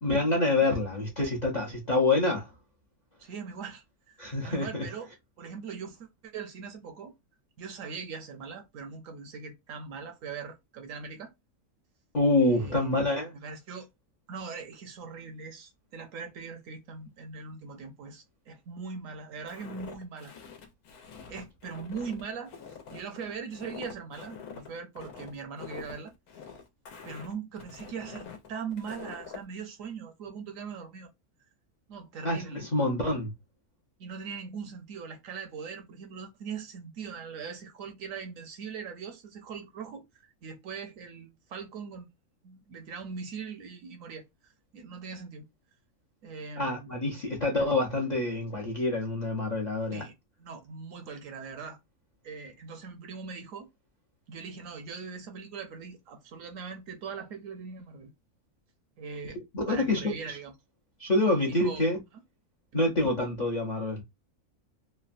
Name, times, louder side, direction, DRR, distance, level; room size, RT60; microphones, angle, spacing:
voice 1, 0.0-2.5 4.2-4.8 12.1-13.3 32.2-33.3 46.6-50.0 59.5-60.4 61.0-62.0 62.7-64.0, left 2 dB, 45° left, 0.5 m, -27 dB
voice 2, 3.2-5.1 5.4-7.1 7.6-11.3 12.4-12.9 13.3-13.9 14.3-20.3 21.3-22.5 22.9-26.1 27.0-31.1 31.9-32.7 34.0-40.0 40.4-42.1 42.4-44.3 44.7-45.4 46.2-46.9 49.9-50.1 50.4-51.8 52.2-53.7 54.3-58.1 59.0-59.4 59.7-60.5 61.3-61.8 62.7-62.9, right 5 dB, 70° right, 0.9 m, -41 dB
Walk footsteps, 19.5-29.4, left 6 dB, 85° left, 1.2 m, -45 dB
3.2 x 2.1 x 2.5 m
omnidirectional pair, 1.5 m